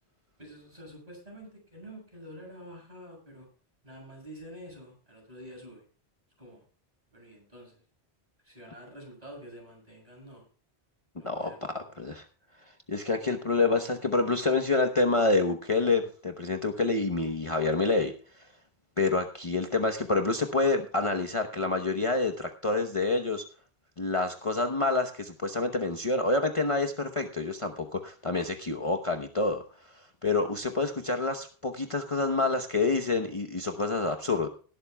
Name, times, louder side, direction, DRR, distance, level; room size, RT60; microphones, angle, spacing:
voice 1, 0.4-3.5 3.8-5.8 6.4-6.6 7.1-7.8 8.4-10.5 11.2-11.9, equal, 35° right, 0 dB, 7.4 m, -48 dB
voice 2, 11.2-12.2 12.9-18.5 19.0-23.4 24.0-34.5, left 3 dB, 30° left, 5 dB, 1.0 m, -28 dB
18.5 x 12.0 x 2.2 m, 0.41 s
omnidirectional pair, 1.1 m